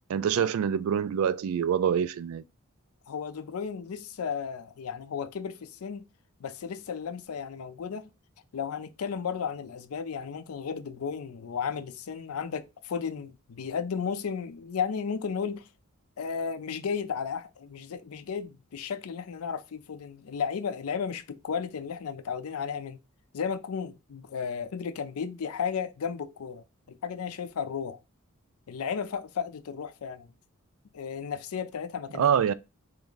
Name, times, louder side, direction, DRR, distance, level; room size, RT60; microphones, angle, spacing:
voice 1, 0.1-2.4 32.2-32.5, right 8 dB, 70° right, 0.3 m, -25 dB
voice 2, 3.1-6.1 6.4-8.1 8.5-15.7 16.2-23.0 23.3-28.0 28.7-30.3 30.9-32.3, left 6 dB, 80° left, 0.5 m, -34 dB
3.5 x 2.7 x 3.7 m
head